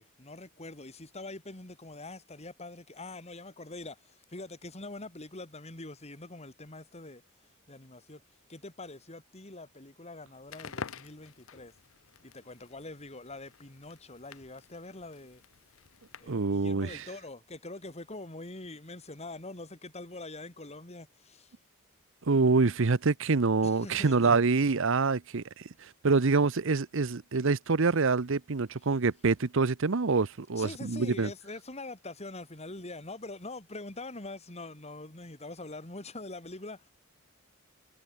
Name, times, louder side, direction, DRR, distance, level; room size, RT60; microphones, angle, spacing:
voice 1, 0.0-7.2 7.7-8.2 8.5-11.7 12.2-15.4 16.2-21.6 23.6-24.3 30.6-36.9, left 2 dB, 30° left, 2.7 m, -44 dB
Crackle, 10.4-16.5, left 5 dB, 65° left, 0.9 m, -48 dB
voice 2, 16.3-17.0 22.3-25.7 26.0-31.3, right 4 dB, 60° right, 0.8 m, -26 dB
head